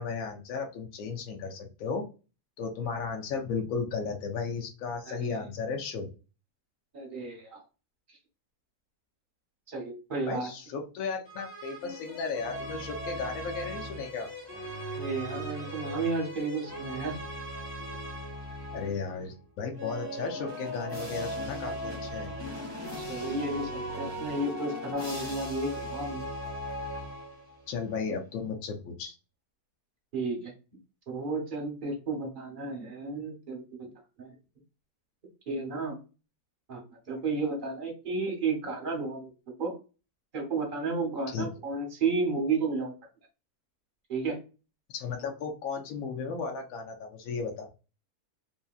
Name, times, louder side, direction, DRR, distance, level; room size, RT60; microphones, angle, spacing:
voice 1, 0.0-2.0 2.6-6.1 10.3-14.3 18.7-22.3 27.7-29.2 41.3-41.5 44.9-47.7, left 5 dB, 70° left, 2 dB, 0.9 m, -35 dB
voice 2, 5.1-5.4 6.9-7.6 8.1-8.2 9.7-10.5 15.0-17.2 23.0-26.2 30.1-30.5 31.1-33.9 34.2-34.3 35.5-36.0 36.7-39.3 39.6-39.7 40.3-42.9 44.1-44.4, right 3 dB, 45° right, 2 dB, 0.8 m, -32 dB
sound 1, 11.3-19.1 19.7-27.6, equal, 25° left, 0.6 m, -38 dB
2.7 x 2.7 x 2.3 m, 0.32 s
omnidirectional pair, 1.7 m